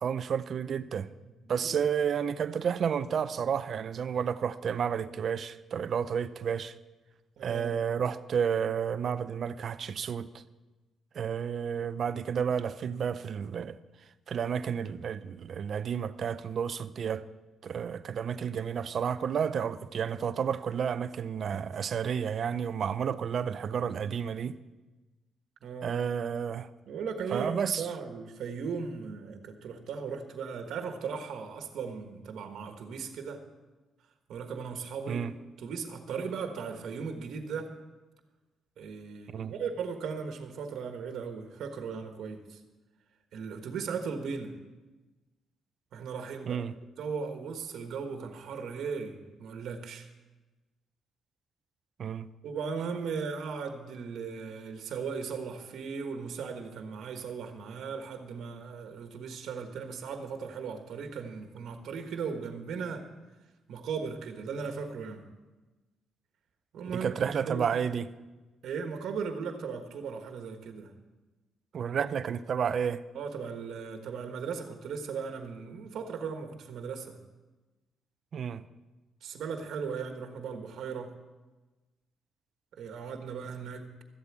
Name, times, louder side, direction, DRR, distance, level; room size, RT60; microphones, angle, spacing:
voice 1, 0.0-1.1 1.5-6.7 7.4-10.3 11.1-13.8 14.3-17.3 17.6-24.6 25.8-26.7 27.3-27.9 35.1-35.3 39.3-39.5 46.5-46.7 52.0-52.3 66.9-68.1 71.7-73.0 78.3-78.6, right 7 dB, 55° right, 0.5 m, -31 dB
voice 2, 7.4-7.8 25.6-26.0 26.9-33.4 34.3-35.2 35.6-37.7 38.8-42.6 43.3-44.5 45.9-46.6 47.0-50.1 52.4-63.1 63.7-65.2 66.7-67.1 67.5-67.7 68.6-70.9 73.1-77.2 79.2-81.1 82.7-84.0, right 5 dB, 70° right, 1.4 m, -37 dB
13.5 x 8.2 x 7.4 m
cardioid pair, 90°, 0 cm